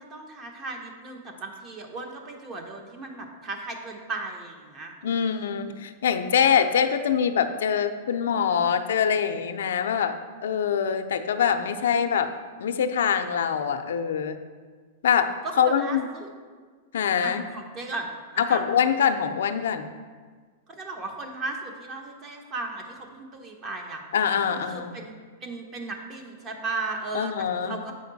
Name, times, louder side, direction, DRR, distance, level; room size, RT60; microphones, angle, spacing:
voice 1, 0.0-5.5 11.8-12.2 15.4-16.3 17.2-18.1 18.3-18.6 20.7-24.0 24.6-25.1 25.4-27.9, right 3 dB, 30° right, 3 dB, 1.0 m, -36 dB
voice 2, 5.0-10.1 10.4-12.3 12.6-14.4 15.0-15.3 15.6-16.1 16.9-17.4 18.4-19.9 24.1-25.0 27.1-27.8, left 7 dB, 80° left, 8 dB, 0.5 m, -24 dB
7.6 x 5.1 x 4.0 m, 1.5 s
hypercardioid pair, 140°, 0 cm